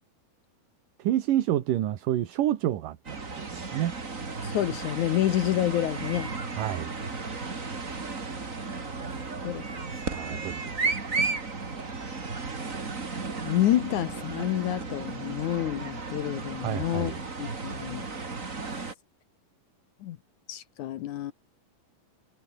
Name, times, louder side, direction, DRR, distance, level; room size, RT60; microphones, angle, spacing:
voice 1, 1.0-3.2 3.5-3.9 6.6-6.9 9.9-10.9 16.6-17.2, right 12 dB, 65° right, 2.9 m, -29 dB
sound 1, 3.0-18.9, right 4 dB, 25° right, 2.5 m, -34 dB
voice 2, 4.4-6.3 9.4-9.6 13.4-17.1 17.4-18.1 20.0-20.2 20.5-21.3, left 13 dB, 70° left, 2.0 m, -28 dB
omnidirectional pair, 4.4 m